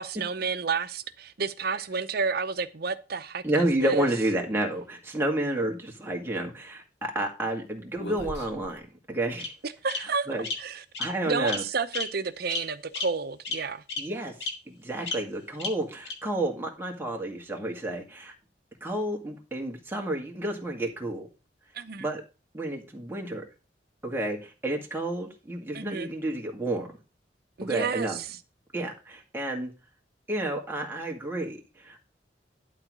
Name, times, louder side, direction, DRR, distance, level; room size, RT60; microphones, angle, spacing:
voice 1, 0.0-3.4 3.8-4.1 9.6-10.3 10.6-10.8 11.3-13.8 21.7-22.1 25.7-26.1 27.6-28.4, right 5 dB, 60° right, 0.8 m, -30 dB
voice 2, 3.4-9.5 10.0-10.5 11.0-11.6 14.0-18.3 18.8-21.3 22.0-22.2 22.5-23.4 24.0-26.9 27.6-28.2 28.7-29.7 30.3-32.0, right 1 dB, 15° right, 1.9 m, -30 dB
Bird vocalization bird call bird song, 8.0-8.7 9.4-9.5 9.9-10.0 10.4-10.5 10.9-11.1 11.5-11.6 11.9-12.0 12.5-12.6 12.9-13.0 13.4-13.5 13.9-14.0 14.4-14.5 15.1-15.2 15.6-15.7 16.0-16.1, left 3 dB, 75° left, 2.0 m, -32 dB
11.5 x 3.9 x 6.2 m
head